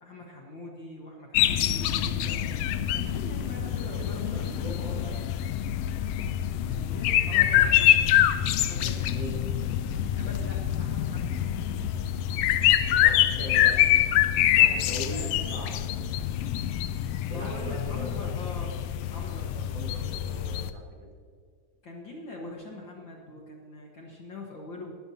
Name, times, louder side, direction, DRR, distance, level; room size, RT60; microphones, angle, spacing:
voice 1, 0.0-2.4 2.9-4.5 6.7-8.1 8.6-9.1 10.2-11.4 15.1-15.5 17.3-18.7 19.1-19.7 21.8-25.0, left 2 dB, 45° left, -1 dB, 1.8 m, -42 dB
sound 1, 1.3-20.7, left 11 dB, 85° left, 1.4 m, -25 dB
voice 2, 3.9-5.1 9.1-9.4 12.9-13.8 14.6-16.0 17.3-18.1 19.7-21.1, right 1 dB, 55° right, -1 dB, 2.9 m, -40 dB
18.5 x 12.5 x 2.8 m, 2.2 s
omnidirectional pair, 3.4 m